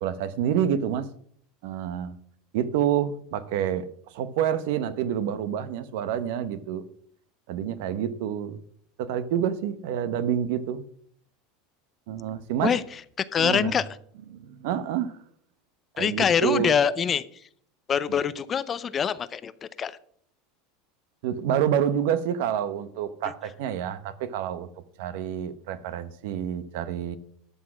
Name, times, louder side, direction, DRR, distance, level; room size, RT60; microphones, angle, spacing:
voice 1, 0.0-1.1 1.6-2.2 2.5-3.9 4.1-6.8 7.5-8.6 9.0-10.8 12.1-12.7 13.4-13.8 14.3-15.1 16.0-16.7 21.2-24.7 25.0-27.2, right 9 dB, 70° right, 14 dB, 0.9 m, -28 dB
voice 2, 13.3-13.9 16.0-17.2 17.9-20.0 23.2-23.3, left 7 dB, 25° left, 16 dB, 0.5 m, -24 dB
12.5 x 6.3 x 6.1 m, 0.62 s
supercardioid pair, 150°, 0 cm